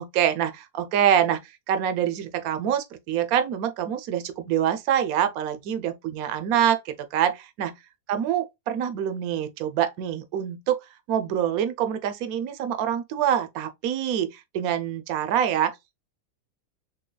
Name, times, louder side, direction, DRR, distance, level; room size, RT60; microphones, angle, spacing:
voice 1, 0.0-7.7 8.1-10.8 11.1-15.7, right 9 dB, 70° right, 1.1 m, -25 dB
3.9 x 3.4 x 2.2 m
omnidirectional pair, 1.7 m